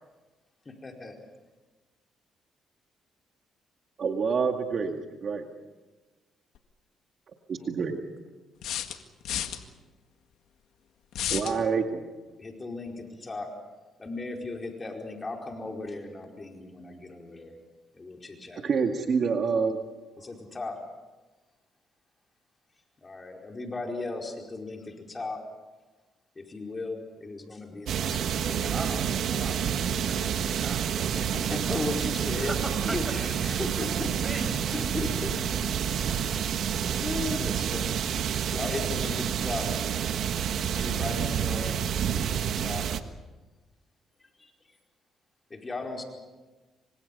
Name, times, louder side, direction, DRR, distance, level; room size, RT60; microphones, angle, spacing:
voice 1, 0.6-1.2 12.4-13.5 14.0-17.6 17.9-19.0 20.2-20.8 23.0-25.4 26.3-29.0 31.1-32.6 32.8-35.5 36.2-36.6 37.0-38.0 38.5-39.7 40.7-42.9 44.4-44.8 45.6-46.0, left 3 dB, 25° left, 1 dB, 4.8 m, -37 dB
voice 2, 4.0-5.5 7.5-8.0 11.3-12.0 18.6-19.8, right 5 dB, 55° right, 4 dB, 2.1 m, -27 dB
sound 1, 6.5-6.6 8.6-9.6 11.1-11.6, left 11 dB, 85° left, 1.9 m, -31 dB
sound 2, 27.9-43.0, right 8 dB, 70° right, 1.4 m, -29 dB
voice 3, 28.7-31.8 32.4-33.0 34.2-34.7, right 1 dB, 15° right, 5 dB, 7.4 m, -39 dB
28.5 x 25.0 x 5.5 m, 1.2 s
cardioid pair, 90°, 0 cm